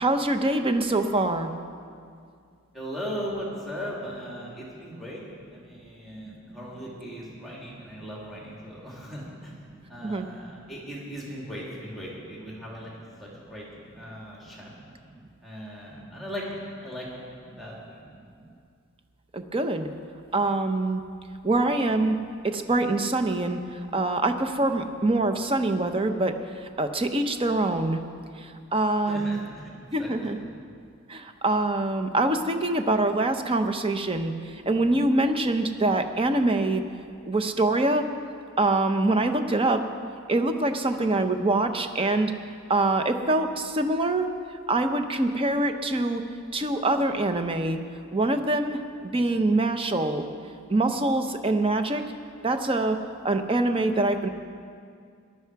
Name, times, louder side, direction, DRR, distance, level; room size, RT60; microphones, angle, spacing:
voice 1, 0.0-1.5 10.0-10.3 19.3-19.9 20.3-21.0 21.4-22.2 22.4-23.6 23.9-26.3 26.8-28.0 28.4-29.4 29.9-30.4 31.1-36.8 37.3-38.0 38.6-39.8 40.3-42.3 42.7-44.3 44.7-46.2 46.5-47.8 48.1-50.2 50.7-52.0 52.4-53.0 53.2-54.3, right 2 dB, 25° right, 7 dB, 0.7 m, -24 dB
voice 2, 2.7-5.2 5.5-9.6 9.9-12.9 13.2-13.7 14.0-14.7 15.4-16.4 16.8-17.3 17.6-17.8 29.0-30.1, equal, ahead, -4 dB, 2.6 m, -38 dB
19.0 x 12.0 x 4.7 m, 2.3 s
head